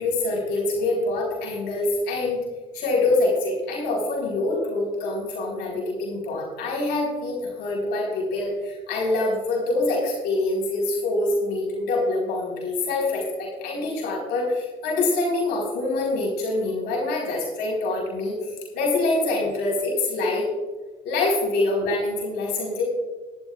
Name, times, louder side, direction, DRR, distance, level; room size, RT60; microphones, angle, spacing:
voice 1, 0.0-2.4 2.7-18.3 18.7-20.4 21.0-22.8, left 2 dB, 90° left, -3 dB, 4.1 m, -25 dB
19.0 x 11.5 x 2.4 m, 1.3 s
cardioid pair, 110°, 17 cm